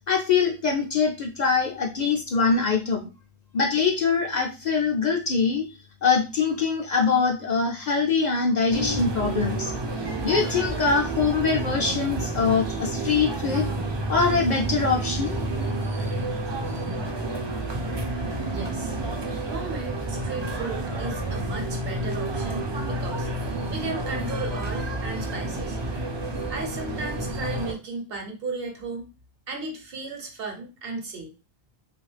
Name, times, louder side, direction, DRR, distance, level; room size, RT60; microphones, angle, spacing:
voice 1, 0.1-3.1 3.5-5.7 6.0-9.7 10.2-13.7 14.1-15.4, left 5 dB, 55° left, 1 dB, 0.5 m, -23 dB
sound 1, 8.7-27.7, right 2 dB, 35° right, 0.4 m, -30 dB
voice 2, 18.5-19.0 19.5-23.3 23.7-25.8 26.5-29.1 29.5-31.3, right 3 dB, 70° right, 3 dB, 1.0 m, -35 dB
3.0 x 2.4 x 3.2 m, 0.31 s
omnidirectional pair, 1.0 m